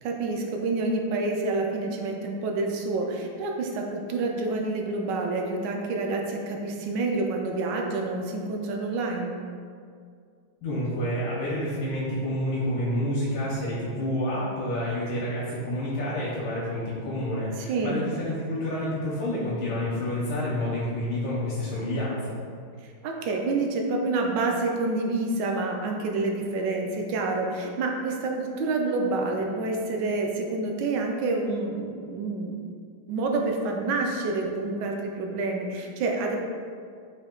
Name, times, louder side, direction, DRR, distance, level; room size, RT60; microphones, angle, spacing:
voice 1, 0.0-9.4 17.6-18.1 22.8-32.5 33.1-36.4, right 3 dB, 75° right, 1 dB, 1.0 m, -28 dB
voice 2, 10.6-22.4, left 1 dB, 90° left, -7 dB, 1.7 m, -29 dB
5.3 x 2.7 x 3.7 m, 2.2 s
omnidirectional pair, 2.3 m